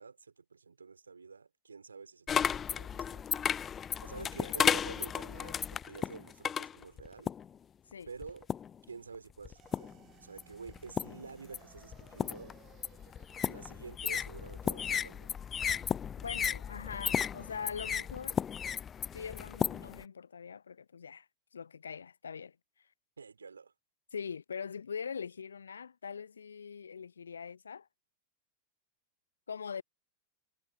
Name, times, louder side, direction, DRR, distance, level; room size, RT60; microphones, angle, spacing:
voice 1, 0.0-3.3 4.0-7.3 8.1-8.5 8.9-9.9 10.2-12.5 13.4-15.4 23.2-23.7, right 5 dB, 75° right, 6.7 m, -49 dB
sound 1, 2.3-7.6 8.2-8.8 9.5-10.0 10.4-20.0, left 8 dB, 25° left, 0.7 m, -34 dB
voice 2, 4.1-4.7 7.9-8.1 16.2-18.4 19.1-21.3 21.5-22.6 24.1-27.9 29.5-29.8, left 6 dB, 70° left, 0.7 m, -42 dB
sound 2, 9.6-18.1, right 15 dB, 35° right, 6.7 m, -64 dB
figure-of-eight pair, 90°, 0 cm